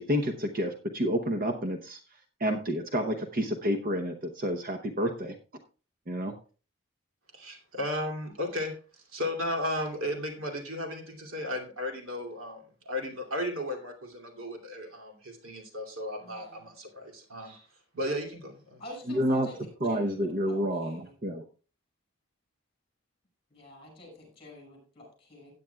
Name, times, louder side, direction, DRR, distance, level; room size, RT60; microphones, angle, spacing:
voice 1, 0.0-2.0 2.4-5.3 6.1-6.3 19.1-19.5 19.8-21.4, equal, 40° right, 4 dB, 0.8 m, -29 dB
voice 2, 7.3-8.8 9.1-17.7 17.9-18.8, left 1 dB, 90° right, 1 dB, 2.6 m, -35 dB
voice 3, 16.2-16.7 18.8-19.6 19.8-21.2 23.5-25.5, left 1 dB, 30° left, 3 dB, 5.8 m, -48 dB
16.5 x 9.2 x 2.3 m, 0.36 s
head